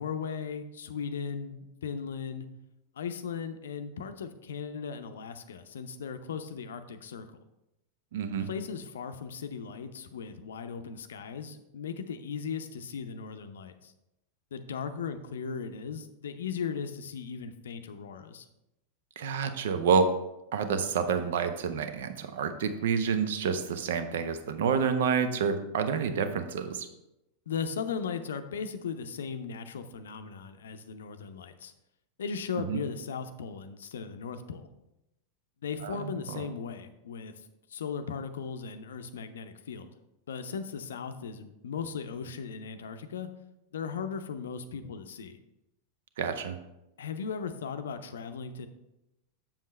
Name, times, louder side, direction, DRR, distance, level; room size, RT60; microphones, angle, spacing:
voice 1, 0.0-2.5 2.9-7.3 8.4-13.9 14.5-18.5 27.5-31.7 32.2-34.7 35.6-39.9 40.3-43.3 43.7-45.4 47.0-48.7, left 6 dB, 65° left, 9 dB, 0.5 m, -37 dB
voice 2, 8.1-8.5 19.2-20.1 20.5-26.9 32.7-32.8 35.8-36.4 46.2-46.6, right 6 dB, 55° right, 9 dB, 0.7 m, -28 dB
7.2 x 7.1 x 3.2 m, 0.91 s
figure-of-eight pair, 90°, 0 cm